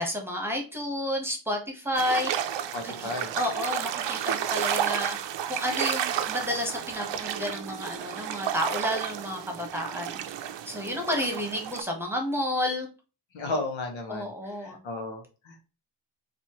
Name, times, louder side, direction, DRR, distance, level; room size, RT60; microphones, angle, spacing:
voice 1, 0.0-2.3 2.8-3.1 3.4-5.2 5.5-10.2 10.7-12.9 14.1-14.8, left 1 dB, 5° right, 2 dB, 1.1 m, -31 dB
sound 1, 1.9-11.8, right 9 dB, 70° right, 0.5 m, -32 dB
voice 2, 2.7-3.3 13.3-15.6, left 2 dB, 90° left, 4 dB, 1.1 m, -34 dB
4.2 x 2.7 x 3.0 m, 0.32 s
cardioid pair, 95°, 45 cm